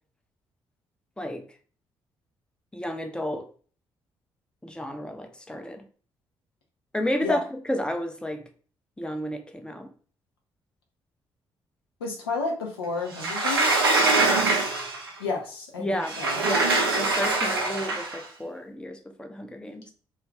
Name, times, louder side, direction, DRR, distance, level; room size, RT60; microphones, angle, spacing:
voice 1, 2.7-3.5 4.6-5.8 6.9-8.5 9.0-9.9 15.8-16.2 16.5-19.9, left 1 dB, 5° left, 6 dB, 0.5 m, -32 dB
voice 2, 12.0-13.8 15.2-16.5, left 3 dB, 80° left, 0 dB, 0.6 m, -31 dB
Sliding door, 13.1-15.1 16.0-18.2, right 3 dB, 85° right, 0.4 m, -23 dB
2.4 x 2.3 x 3.2 m, 0.41 s
figure-of-eight pair, 40°, 12 cm